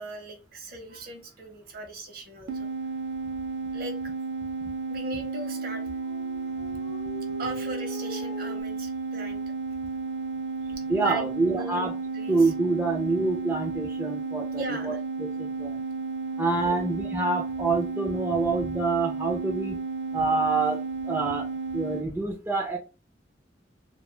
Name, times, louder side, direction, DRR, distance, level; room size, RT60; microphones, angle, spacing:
voice 1, 0.0-2.7 3.7-4.1 4.9-5.8 7.4-9.4 10.6-11.8 12.1-12.5 14.5-15.0 16.5-16.7, right 1 dB, 55° right, 4 dB, 0.7 m, -39 dB
sound 1, 2.5-22.1, right 4 dB, 90° right, 0.4 m, -33 dB
Dog, 5.2-8.6, left 2 dB, 60° left, 0.6 m, -42 dB
voice 2, 10.9-11.9 12.3-14.9 15.4-15.8 16.4-19.8 20.1-21.5 21.7-22.8, right 3 dB, 15° right, -1 dB, 0.3 m, -26 dB
2.2 x 2.1 x 3.0 m, 0.33 s
head